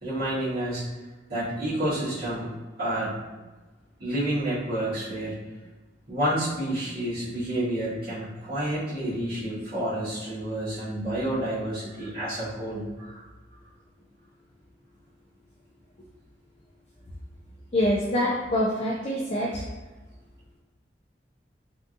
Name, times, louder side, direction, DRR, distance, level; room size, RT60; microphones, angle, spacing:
voice 1, 0.0-0.8 1.3-2.5 2.8-3.1 4.0-5.4 6.1-13.2, right 1 dB, 60° right, -13 dB, 1.5 m, -29 dB
voice 2, 17.7-19.7, left 1 dB, 35° left, -4 dB, 0.4 m, -25 dB
3.4 x 2.7 x 2.5 m, 1.2 s
head